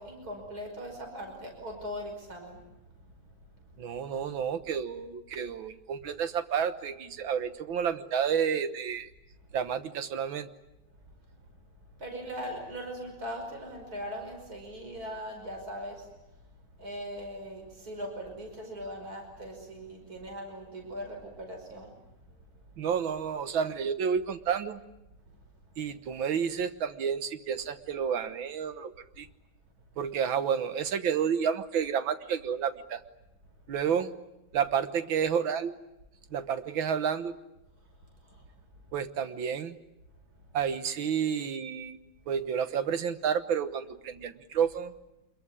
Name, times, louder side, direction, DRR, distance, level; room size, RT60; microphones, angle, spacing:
voice 1, 0.0-2.6 2.9-3.2 11.1-11.4 12.0-16.1 16.8-22.0 22.2-22.7 38.0-38.5, equal, 45° right, 3 dB, 5.9 m, -40 dB
voice 2, 3.8-9.1 9.5-10.5 22.8-24.8 25.8-29.3 30.0-33.0 33.7-34.1 34.5-35.7 36.3-37.3 38.9-39.8 40.5-42.0 42.3-44.9, right 7 dB, 75° right, 10 dB, 2.0 m, -30 dB
26.0 x 22.5 x 9.8 m, 0.93 s
omnidirectional pair, 2.2 m